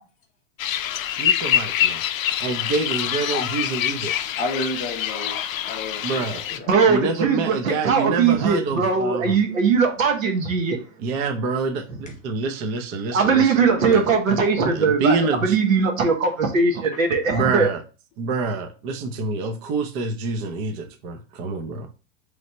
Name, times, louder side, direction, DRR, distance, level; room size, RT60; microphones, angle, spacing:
sound 1, 0.6-6.6, left 11 dB, 85° left, 0.5 m, -25 dB
voice 1, 1.2-2.0 2.4-4.1 6.0-6.4 6.9-9.4 11.0-13.5 13.9-14.1 14.7-15.6 17.3-17.8 18.2-21.9, right 4 dB, 35° right, 0.6 m, -26 dB
voice 2, 4.4-6.7 16.9-17.0, left 1 dB, 20° left, 0.6 m, -31 dB
voice 3, 6.7-10.8 13.1-15.2 15.4-17.7, right 5 dB, 85° right, 1.2 m, -20 dB
3.2 x 2.7 x 4.2 m
hypercardioid pair, 130°, 39 cm